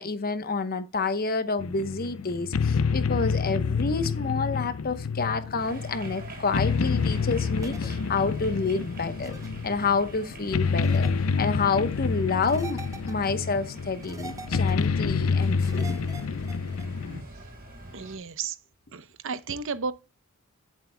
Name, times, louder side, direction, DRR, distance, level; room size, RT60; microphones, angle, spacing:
voice 1, 0.0-9.3 9.6-11.1 11.4-12.8 13.1-16.0, left 4 dB, 45° left, 1.0 m, -28 dB
sound 1, 1.6-17.2, left 5 dB, 80° left, 0.5 m, -28 dB
sound 2, 5.6-18.2, right 1 dB, 45° right, 5.3 m, -45 dB
sound 3, 7.6-7.9 9.2-9.5 10.8-11.1 12.4-13.3 14.0-14.9 15.6-16.9, right 4 dB, 15° right, 0.8 m, -43 dB
voice 2, 17.9-18.6 18.9-19.9, right 5 dB, 65° right, 0.8 m, -33 dB
16.0 x 7.6 x 2.2 m
head